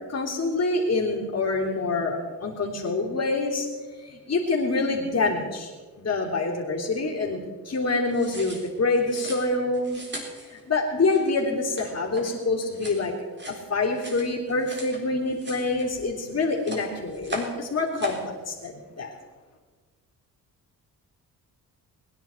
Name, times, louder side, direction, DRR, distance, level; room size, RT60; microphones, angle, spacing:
voice 1, 0.1-3.7 4.0-5.7 6.0-7.4 7.6-10.0 10.5-13.1 13.5-19.1, left 3 dB, 45° left, -6 dB, 3.4 m, -26 dB
sound 1, 8.1-15.0 15.3-16.2 16.5-17.6 17.9-18.3, right 1 dB, 30° right, 4.0 m, -39 dB
21.5 x 10.5 x 4.5 m, 1.4 s
cardioid pair, 90°, 36 cm